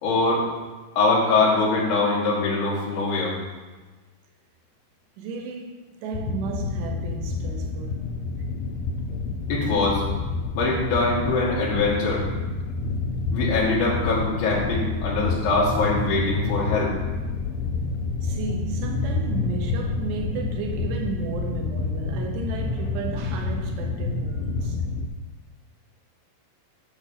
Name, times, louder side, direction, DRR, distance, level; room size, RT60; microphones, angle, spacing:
voice 1, 0.0-0.5 0.9-3.3 9.5-10.0 10.5-12.3 13.3-16.9, left 3 dB, 50° left, 3.4 m, -23 dB
voice 2, 5.2-8.1 16.6-16.8 18.2-24.8, right 5 dB, 90° right, 3.2 m, -34 dB
sound 1, 6.1-25.1, left 3 dB, 85° left, 2.7 m, -28 dB
8.9 x 6.6 x 5.0 m
omnidirectional pair, 4.8 m